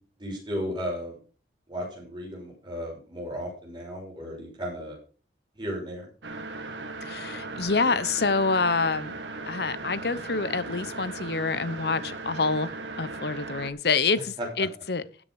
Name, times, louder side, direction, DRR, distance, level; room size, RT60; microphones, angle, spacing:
voice 1, 0.2-1.2 1.7-5.0 5.6-6.1 14.4-14.5, equal, 25° right, 6.0 m, -34 dB
sound 1, 6.2-13.7, right 3 dB, 85° right, 1.8 m, -37 dB
voice 2, 7.0-9.1 9.5-15.0, left 4 dB, 65° left, 0.9 m, -27 dB
13.0 x 7.7 x 4.8 m
head